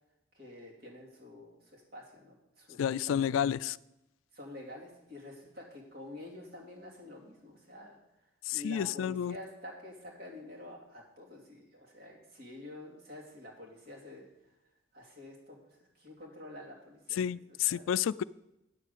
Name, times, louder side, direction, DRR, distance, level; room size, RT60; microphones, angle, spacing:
voice 1, 0.3-3.5 4.3-8.0 8.5-14.3 14.9-17.9, left 1 dB, 55° right, -2 dB, 2.8 m, -48 dB
voice 2, 2.8-3.8 8.5-9.3 17.1-18.2, left 9 dB, 85° left, 19 dB, 0.3 m, -30 dB
9.1 x 7.4 x 6.7 m, 0.92 s
head